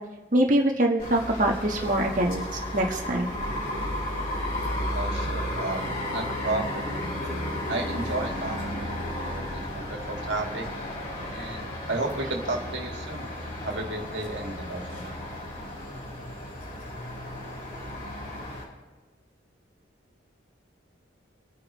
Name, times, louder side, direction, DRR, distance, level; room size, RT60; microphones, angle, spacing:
voice 1, 0.3-3.3, right 1 dB, 40° right, 1 dB, 1.3 m, -24 dB
sound 1, 1.0-18.6, left 1 dB, 50° left, 5.5 m, -33 dB
voice 2, 4.9-7.2 7.7-10.7 11.3-13.3 13.6-15.2, right 2 dB, 65° right, 1 dB, 2.1 m, -33 dB
28.0 x 9.7 x 3.1 m, 1.3 s
head